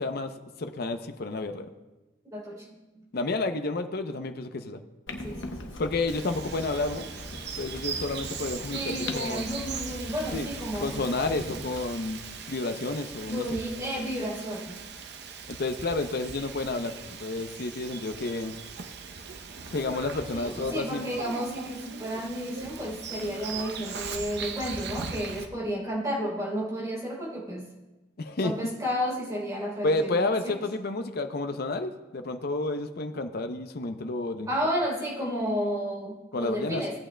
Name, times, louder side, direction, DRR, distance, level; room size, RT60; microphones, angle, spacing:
voice 1, 0.0-1.7 3.1-4.8 5.8-7.1 7.6-9.5 10.3-10.5 10.8-12.2 12.5-13.6 15.5-18.5 19.7-21.2 28.2-28.5 29.8-34.5 36.3-36.8, left 2 dB, 55° left, 8 dB, 0.6 m, -30 dB
voice 2, 2.3-3.0 5.2-5.7 8.7-11.0 13.2-14.8 20.3-27.7 28.4-30.6 34.5-36.9, equal, 20° right, -4 dB, 3.0 m, -32 dB
Clock, 5.1-11.8, left 2 dB, 85° left, 1.0 m, -40 dB
Bird vocalization bird call bird song, 6.1-25.5, right 5 dB, 60° right, 0.7 m, -39 dB
17.0 x 8.7 x 2.2 m, 1.1 s
head